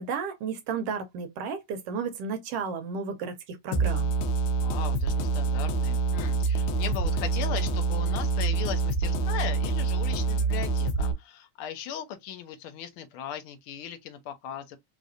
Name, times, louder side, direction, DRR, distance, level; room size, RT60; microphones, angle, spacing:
voice 1, 0.0-4.1, right 5 dB, 75° right, 1.4 m, -33 dB
sound 1, 3.7-11.1, right 4 dB, 80° left, 2.2 m, -26 dB
voice 2, 4.5-14.8, left 9 dB, 65° left, 1.4 m, -38 dB
5.0 x 3.0 x 2.6 m
omnidirectional pair, 3.4 m